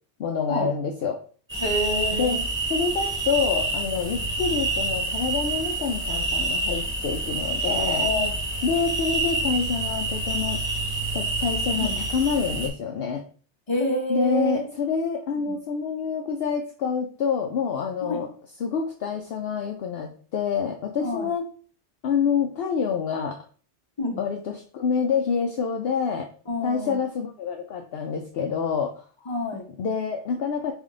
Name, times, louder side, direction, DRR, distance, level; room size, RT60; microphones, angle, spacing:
voice 1, 0.2-1.2 2.1-2.4 2.7-8.1 8.6-10.6 11.1-13.2 14.1-18.3 18.6-21.5 22.0-23.4 24.2-26.3 26.6-29.0 29.8-30.7, left 6 dB, 65° left, 3 dB, 0.7 m, -27 dB
sound 1, 1.5-12.7, right 2 dB, 10° right, 0.7 m, -27 dB
voice 2, 1.6-2.5 4.1-4.2 8.0-8.3 11.8-12.0 13.7-14.6 15.4-15.6 18.0-18.2 21.0-21.2 24.0-24.2 26.5-27.0 29.3-29.6, left 1 dB, 25° left, -1 dB, 1.0 m, -27 dB
3.5 x 3.2 x 3.7 m, 0.41 s
omnidirectional pair, 1.2 m